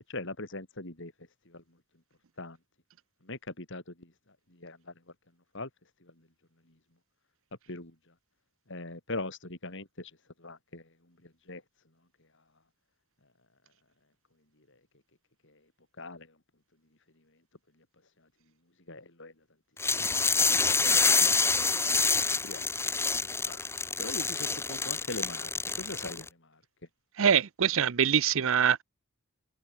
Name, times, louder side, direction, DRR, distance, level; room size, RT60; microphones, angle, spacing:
voice 1, 0.1-1.1 1.5-1.6 2.4-2.6 3.2-4.1 4.5-4.9 5.5-5.7 6.0-6.1 7.7-7.9 8.7-10.1 10.4-10.8 11.2-11.6 15.4-15.5 16.0-16.3 18.9-19.3 22.3-22.6 23.2-23.6 24.0-25.5 25.8-26.3, left 2 dB, 55° left, 4.3 m, -41 dB
sound 1, 19.8-26.3, left 4 dB, 10° left, 1.4 m, -27 dB
voice 2, 27.2-28.8, right 8 dB, 60° right, 0.6 m, -24 dB
head